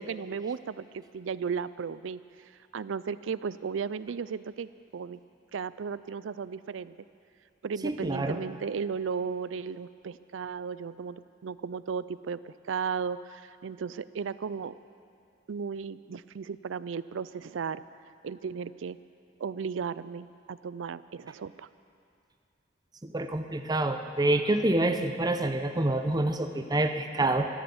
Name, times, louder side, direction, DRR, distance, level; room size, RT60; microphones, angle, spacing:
voice 1, 0.0-2.2 2.7-5.2 5.5-7.0 7.6-14.7 15.5-17.8 18.2-19.0 19.4-21.7, right 6 dB, 90° right, 16 dB, 0.4 m, -35 dB
voice 2, 7.8-8.4 23.0-27.5, right 2 dB, 20° right, 7 dB, 0.8 m, -27 dB
13.5 x 13.0 x 7.1 m, 2.4 s
head